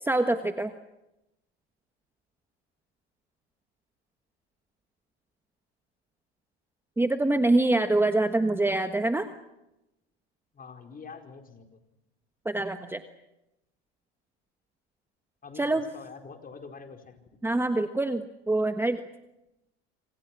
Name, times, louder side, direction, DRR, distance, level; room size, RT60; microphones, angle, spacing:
voice 1, 0.0-0.7 7.0-9.3 12.4-13.0 15.6-15.8 17.4-19.0, right 2 dB, 5° right, 8 dB, 1.3 m, -25 dB
voice 2, 10.5-11.8 12.6-12.7 15.4-17.2, left 5 dB, 25° left, 4 dB, 4.7 m, -45 dB
27.0 x 26.0 x 6.1 m, 0.93 s
hypercardioid pair, 95°, 33 cm